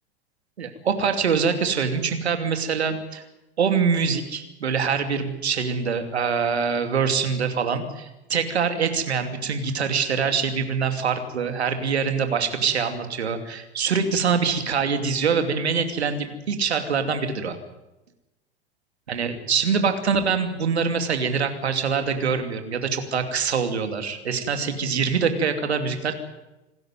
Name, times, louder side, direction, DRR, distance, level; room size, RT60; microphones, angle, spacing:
voice 1, 0.6-3.2 3.6-17.6 19.1-26.1, right 6 dB, 75° right, 8 dB, 2.8 m, -24 dB
26.0 x 13.0 x 9.4 m, 0.98 s
figure-of-eight pair, 85°, 33 cm